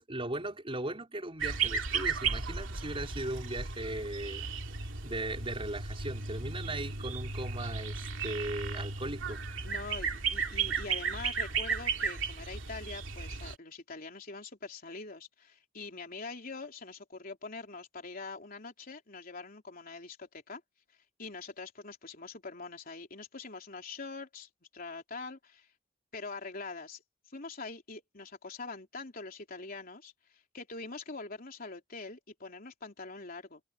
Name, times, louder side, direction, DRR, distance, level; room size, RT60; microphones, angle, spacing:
voice 1, 0.0-4.4 5.0-9.4 10.7-10.8, right 1 dB, 30° right, 4.6 m, -38 dB
sound 1, 1.4-13.5, right 5 dB, 85° right, 2.7 m, -35 dB
voice 2, 9.6-20.6 21.2-25.7 26.1-27.0 27.3-33.6, left 3 dB, 50° left, 3.5 m, -44 dB
head